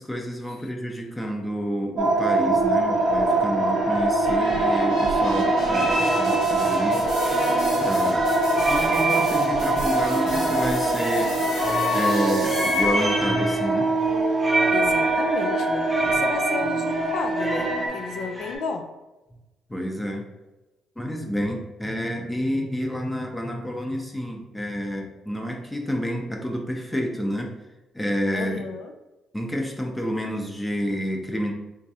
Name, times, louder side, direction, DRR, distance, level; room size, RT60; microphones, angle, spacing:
voice 1, 0.0-7.1 7.8-8.4 8.7-11.4 11.9-13.9 19.3-19.4 19.7-20.3 21.0-27.6 27.9-28.6 29.3-31.5, equal, 10° left, 1 dB, 0.6 m, -29 dB
sound 1, 2.0-13.2, left 1 dB, 85° left, 1.5 m, -38 dB
sound 2, 2.0-17.9, right 2 dB, 75° right, 0.7 m, -23 dB
sound 3, 2.7-2.8 3.0-3.4 4.3-5.0 5.3-18.6, right 1 dB, 15° right, 0.9 m, -29 dB
voice 2, 5.7-6.4 14.7-18.9 28.3-28.9, left 4 dB, 65° left, 6 dB, 0.4 m, -33 dB
3.5 x 3.0 x 2.8 m, 1.0 s
cardioid pair, 90°, 0 cm